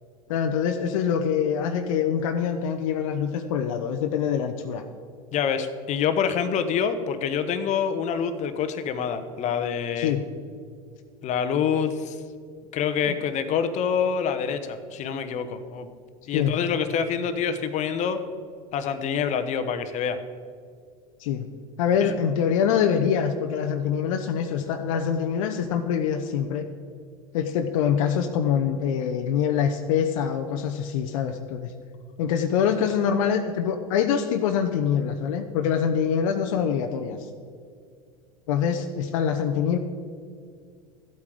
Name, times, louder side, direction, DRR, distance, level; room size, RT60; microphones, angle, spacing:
voice 1, 0.3-4.8 10.0-10.3 13.1-13.2 16.3-16.6 21.2-21.5 21.8-26.7 27.3-31.7 32.2-37.2 38.5-39.8, left 8 dB, 60° left, 6 dB, 0.8 m, -24 dB
voice 2, 5.3-10.1 11.2-12.2 12.7-15.9 16.3-18.2 18.7-20.2 22.0-22.1, left 7 dB, 40° left, 9 dB, 1.0 m, -26 dB
13.5 x 8.4 x 4.9 m, 2.2 s
hypercardioid pair, 85°, 19 cm